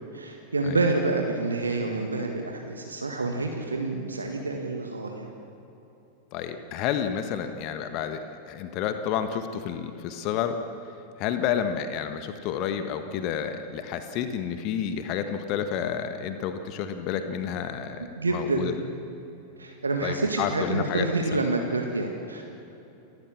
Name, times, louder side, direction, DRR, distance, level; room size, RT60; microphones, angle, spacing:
voice 1, 0.1-5.3 18.0-18.8 19.6-22.4, right 3 dB, 75° right, 3 dB, 1.8 m, -28 dB
voice 2, 6.3-10.6 11.2-18.7 20.0-21.1, left 8 dB, 40° left, 8 dB, 1.4 m, -30 dB
29.0 x 15.0 x 7.3 m, 3.0 s
figure-of-eight pair, 90°, 0 cm